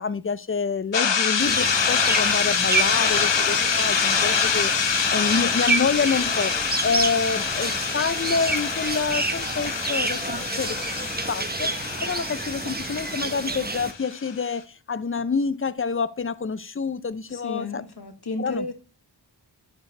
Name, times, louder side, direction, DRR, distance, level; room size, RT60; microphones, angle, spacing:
voice 1, 0.0-6.5 6.8-10.8 11.3-11.7 12.0-17.8 18.4-18.7, left 5 dB, 30° left, 0.5 m, -27 dB
sound 1, 0.9-14.3, left 6 dB, 85° left, 0.8 m, -25 dB
sound 2, 1.4-13.9, right 3 dB, 20° right, 0.8 m, -29 dB
voice 2, 17.3-18.7, left 2 dB, 60° left, 1.3 m, -32 dB
12.0 x 4.6 x 3.2 m
wide cardioid pair, 50°, 43 cm